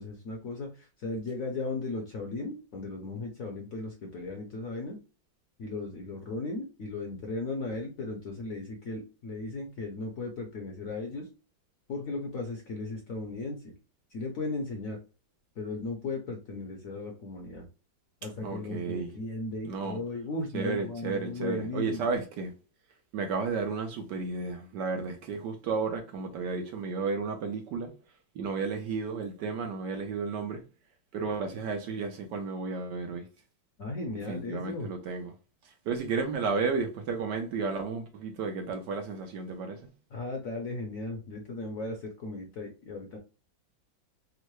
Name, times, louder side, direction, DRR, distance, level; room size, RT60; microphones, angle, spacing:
voice 1, 0.0-5.0 5.6-11.3 11.9-13.7 14.1-15.0 15.6-17.7 18.2-22.2 33.8-34.9 40.1-43.2, left 3 dB, 60° left, 0.9 m, -36 dB
voice 2, 18.4-19.2 19.6-20.0 20.5-22.5 23.1-27.9 28.3-30.6 31.1-33.3 34.3-35.3 35.9-39.8, right 4 dB, 70° right, 1.2 m, -33 dB
3.6 x 2.1 x 3.0 m
omnidirectional pair, 2.1 m